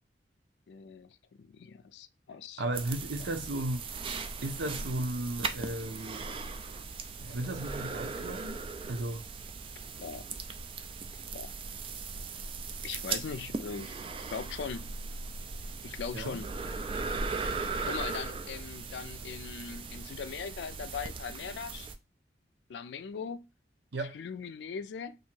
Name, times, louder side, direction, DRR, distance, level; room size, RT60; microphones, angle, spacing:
voice 1, 0.7-2.6 10.0-10.2 11.3-11.5 12.8-13.9 14.3-14.9 15.8-16.5 17.8-21.9 22.7-23.4 24.0-25.2, left 6 dB, 75° left, 0.4 m, -40 dB
voice 2, 2.6-3.9 4.4-6.3 7.2-9.2 16.1-16.4 23.9-24.2, right 1 dB, 75° right, 0.7 m, -35 dB
sound 1, 2.7-22.0, right 4 dB, 30° right, 0.3 m, -38 dB
2.8 x 2.7 x 4.3 m
head